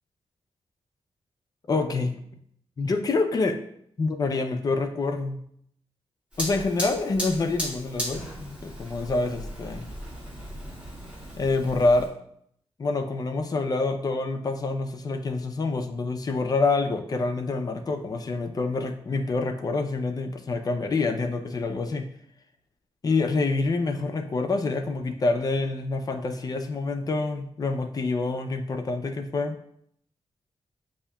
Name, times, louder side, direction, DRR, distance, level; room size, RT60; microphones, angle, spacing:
voice 1, 1.7-2.2 2.8-3.6 4.0-5.4 6.4-9.9 11.4-12.1 12.8-22.1 23.0-29.6, left 3 dB, 35° left, 6 dB, 0.4 m, -27 dB
Fire, 6.3-12.1, equal, 10° right, 1.5 m, -36 dB
8.2 x 2.7 x 2.2 m, 0.69 s
wide cardioid pair, 170°, 10 cm